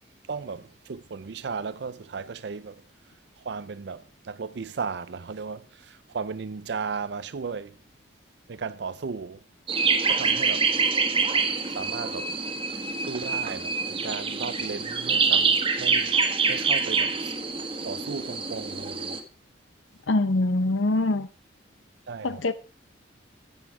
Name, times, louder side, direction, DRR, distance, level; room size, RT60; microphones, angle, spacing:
voice 1, 0.3-2.7 3.4-7.7 8.5-9.4 10.1-10.7 11.7-12.3 13.1-16.2 16.5-17.3 17.8-19.2 22.1-22.4, right 5 dB, 60° right, 0.5 m, -35 dB
sound 1, 9.7-19.2, right 5 dB, 30° right, 1.4 m, -26 dB
voice 2, 20.1-21.3 22.2-22.5, left 2 dB, 85° left, 0.8 m, -23 dB
15.0 x 8.2 x 4.8 m
head